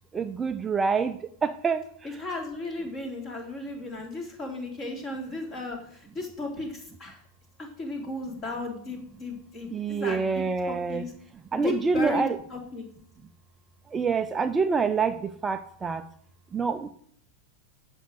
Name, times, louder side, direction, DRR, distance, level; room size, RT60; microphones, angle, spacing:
voice 1, 0.1-1.1 1.4-1.8 9.7-11.0 11.5-12.4 13.9-15.2 15.4-16.0 16.5-16.9, right 5 dB, 15° right, 9 dB, 0.5 m, -26 dB
voice 2, 2.2-7.2 7.6-11.1 11.5-12.2 12.5-12.8, left 2 dB, 30° left, 2 dB, 3.2 m, -35 dB
10.0 x 7.0 x 6.5 m, 0.63 s
figure-of-eight pair, 90°, 0 cm